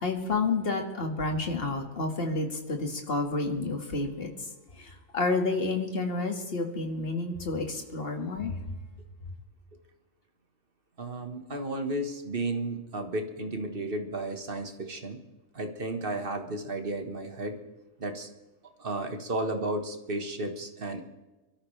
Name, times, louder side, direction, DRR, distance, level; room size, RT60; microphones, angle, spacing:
voice 1, 0.0-4.3 5.1-8.5, left 3 dB, 45° left, 3 dB, 2.0 m, -30 dB
voice 2, 11.0-15.2 15.5-17.6 18.0-18.3 18.8-21.0, right 2 dB, 45° right, 5 dB, 1.7 m, -33 dB
24.5 x 13.5 x 3.3 m, 1.1 s
omnidirectional pair, 1.3 m